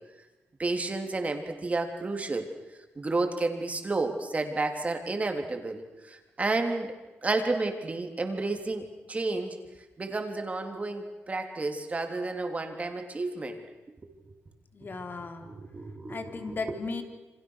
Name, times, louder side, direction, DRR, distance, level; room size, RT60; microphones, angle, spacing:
voice 1, 0.6-2.5 3.0-6.9 7.2-9.6 10.0-13.6 14.0-14.1 15.2-16.8, right 3 dB, 30° right, 5 dB, 3.6 m, -31 dB
voice 2, 14.7-15.5 16.1-17.0, left 4 dB, 40° left, 6 dB, 3.3 m, -36 dB
29.0 x 25.0 x 6.6 m, 1.1 s
cardioid pair, 95°, 5 cm